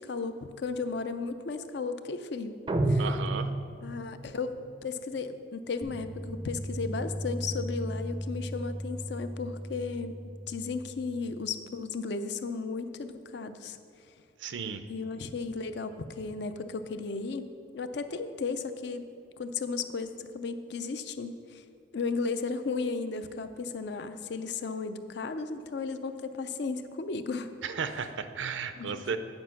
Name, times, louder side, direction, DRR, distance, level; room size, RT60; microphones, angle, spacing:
voice 1, 0.0-2.6 2.9-3.1 3.8-4.6 4.8-10.1 10.5-13.8 14.9-19.0 19.4-21.6 21.9-27.5 28.8-29.0, left 4 dB, 65° left, 10 dB, 0.5 m, -35 dB
sound 1, 2.7-4.1, right 1 dB, 25° right, 0.4 m, -28 dB
voice 2, 3.0-3.5 14.4-14.8 27.6-29.2, right 6 dB, 80° right, 10 dB, 0.5 m, -34 dB
sound 2, 5.8-10.8, equal, 85° left, 2.0 m, -37 dB
9.6 x 5.0 x 5.9 m, 2.6 s
head